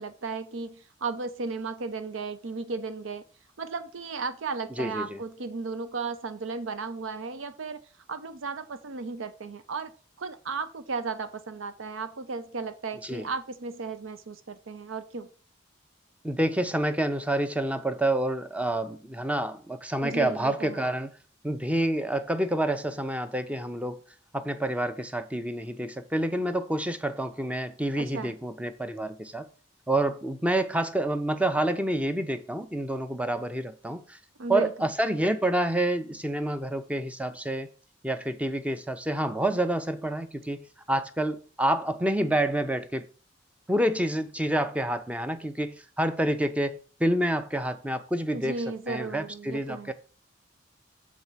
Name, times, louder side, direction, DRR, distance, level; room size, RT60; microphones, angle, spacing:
voice 1, 0.0-3.2 3.6-7.8 8.1-9.9 10.2-15.3 20.0-20.8 28.0-28.3 34.4-34.9 48.3-49.9, right 4 dB, 90° right, 0.7 m, -35 dB
voice 2, 4.8-5.2 13.0-13.3 16.2-21.1 21.4-24.0 24.3-29.4 29.9-34.2 34.5-37.7 38.0-40.6 40.9-43.0 43.7-48.6 48.9-49.9, right 1 dB, 5° right, 0.6 m, -28 dB
7.3 x 4.6 x 5.6 m
head